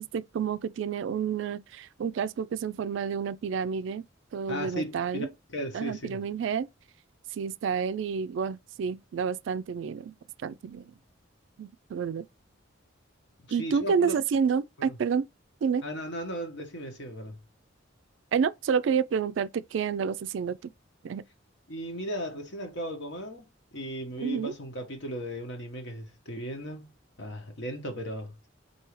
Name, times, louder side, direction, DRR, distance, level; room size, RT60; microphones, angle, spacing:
voice 1, 0.0-4.0 4.3-5.3 5.7-6.7 7.3-10.1 10.4-10.8 11.6-12.3 13.5-15.3 15.6-15.8 18.3-20.7 21.0-21.2 24.2-24.5, right 6 dB, 65° right, 0.3 m, -29 dB
voice 2, 4.5-5.2 5.5-6.2 13.6-14.1 14.8-14.9 15.8-17.4 21.7-26.9 27.2-28.5, equal, 60° left, 1.2 m, -36 dB
4.7 x 2.7 x 3.1 m
head